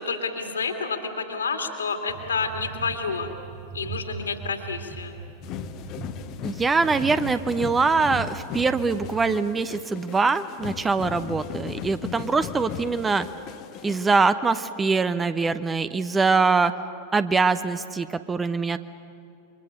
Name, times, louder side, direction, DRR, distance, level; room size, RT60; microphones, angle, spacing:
voice 1, 0.0-3.3 3.7-5.2, left 4 dB, 75° left, 5 dB, 2.6 m, -29 dB
sound 1, 2.1-9.3, right 6 dB, 45° right, 6.6 m, -40 dB
sound 2, 5.4-14.2, left 9 dB, 40° left, 1.1 m, -37 dB
voice 2, 6.4-13.3 13.8-16.7 17.1-18.8, right 4 dB, 15° right, 13 dB, 0.8 m, -23 dB
28.5 x 24.0 x 6.7 m, 2.7 s
figure-of-eight pair, 90°, 0 cm